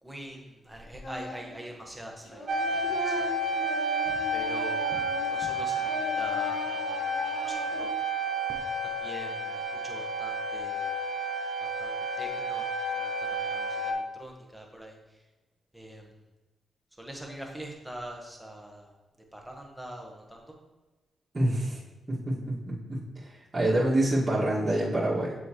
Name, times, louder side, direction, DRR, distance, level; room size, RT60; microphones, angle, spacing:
voice 1, 0.0-4.0 4.3-5.0 5.3-7.9 9.0-10.9 11.6-12.6 12.9-15.0 15.7-16.1 17.0-18.9 19.3-20.6, right 1 dB, 5° right, 0 dB, 1.5 m, -44 dB
Singing, 1.0-1.6 1.9-5.5 5.8-7.8, left 1 dB, 60° left, 1.8 m, -39 dB
sound 1, 2.5-13.9, right 1 dB, 60° right, 1.0 m, -31 dB
voice 2, 21.3-21.8 22.1-23.0 23.5-25.4, right 1 dB, 30° right, -7 dB, 2.1 m, -26 dB
6.9 x 5.0 x 3.2 m, 1.1 s
cardioid pair, 60°, 0 cm